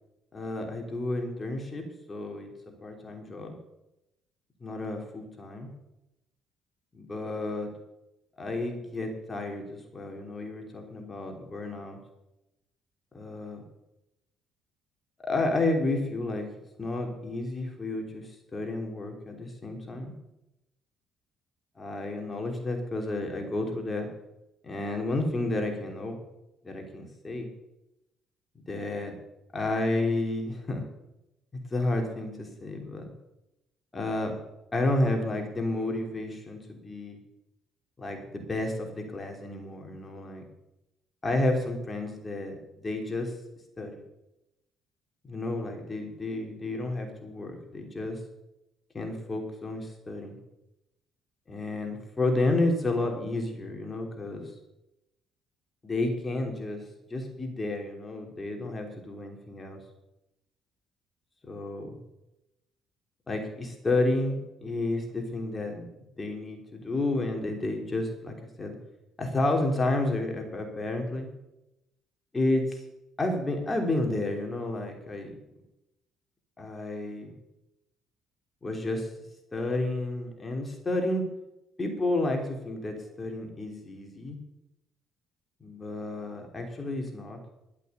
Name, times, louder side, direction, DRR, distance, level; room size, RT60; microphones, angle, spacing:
voice 1, 0.3-2.5 2.8-3.6 4.6-5.7 6.9-7.7 8.4-12.0 13.1-13.6 15.2-16.5 16.8-20.1 21.8-24.1 24.6-26.2 26.6-27.5 28.7-29.2 29.5-30.8 31.5-33.1 33.9-34.3 34.7-37.2 38.0-40.4 41.2-42.6 42.8-43.3 43.8-44.0 45.3-48.2 48.9-50.4 51.5-54.5 55.8-56.8 57.1-59.8 61.5-62.0 63.3-65.9 66.2-68.8 69.2-71.3 72.3-72.8 73.2-75.3 76.6-77.3 78.6-79.1 79.5-81.2 81.8-84.4 85.6-87.4, left 2 dB, 25° left, 2 dB, 3.3 m, -31 dB
12.0 x 8.3 x 8.2 m, 0.90 s
cardioid pair, 85°, 0 cm